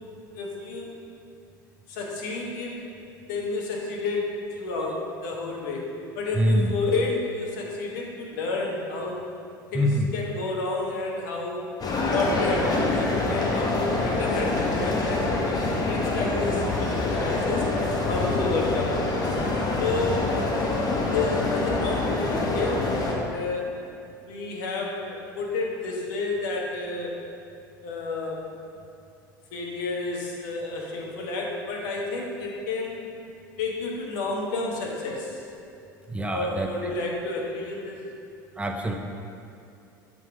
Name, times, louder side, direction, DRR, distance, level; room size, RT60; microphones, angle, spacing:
voice 1, 0.3-0.9 1.9-2.8 3.3-5.9 6.1-9.3 9.7-11.7 12.1-17.7 18.1-19.1 19.8-20.3 21.1-23.8 24.2-27.2 27.8-28.5 29.5-33.1 33.6-35.4 36.3-38.0, left 3 dB, 65° left, -1 dB, 1.2 m, -30 dB
voice 2, 6.4-6.7 9.7-10.1 20.1-20.2 36.1-36.7 38.6-38.9, equal, 10° right, 2 dB, 0.6 m, -24 dB
sound 1, 11.8-23.1, left 2 dB, 35° left, 1.3 m, -26 dB
7.4 x 4.0 x 4.8 m, 2.5 s
hypercardioid pair, 75°, 11 cm